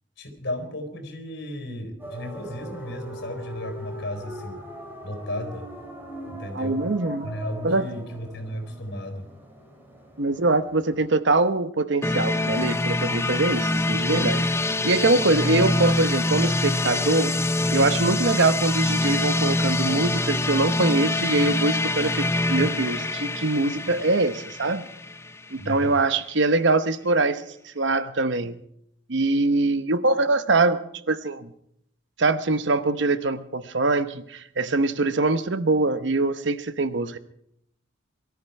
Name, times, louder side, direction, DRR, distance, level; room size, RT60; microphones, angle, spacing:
voice 1, 0.2-4.6 5.0-5.7 6.3-6.9 7.2-9.3 25.6-26.0, left 1 dB, 60° left, 5 dB, 4.2 m, -34 dB
sound 1, 2.0-11.1, equal, 10° right, 3.5 m, -41 dB
voice 2, 6.5-7.3 7.6-7.9 10.2-14.5 14.8-17.3 17.7-24.8 25.5-28.6 29.1-30.8 31.1-31.5 32.2-37.2, right 3 dB, 60° right, 12 dB, 0.9 m, -23 dB
sound 2, 12.0-25.8, left 2 dB, 15° left, 0.7 m, -25 dB
22.5 x 13.5 x 4.7 m, 0.72 s
head